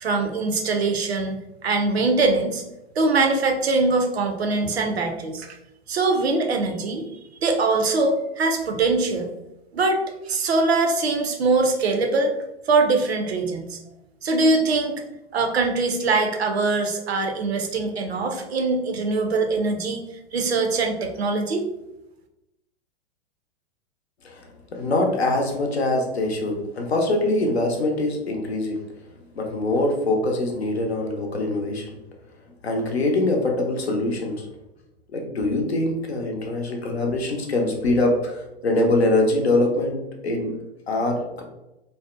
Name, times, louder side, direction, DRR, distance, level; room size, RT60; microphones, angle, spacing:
voice 1, 0.0-2.6 3.0-5.6 5.9-7.0 7.4-9.3 9.7-12.3 12.7-13.8 14.2-15.0 15.3-20.0 20.3-21.6, right 3 dB, 80° right, 4 dB, 0.5 m, -22 dB
voice 2, 24.2-28.8 29.3-31.9 32.6-34.5 35.1-40.0 40.2-40.6 40.9-41.4, left 2 dB, 80° left, 2 dB, 0.6 m, -23 dB
2.6 x 2.1 x 2.4 m, 0.93 s
figure-of-eight pair, 100°, 31 cm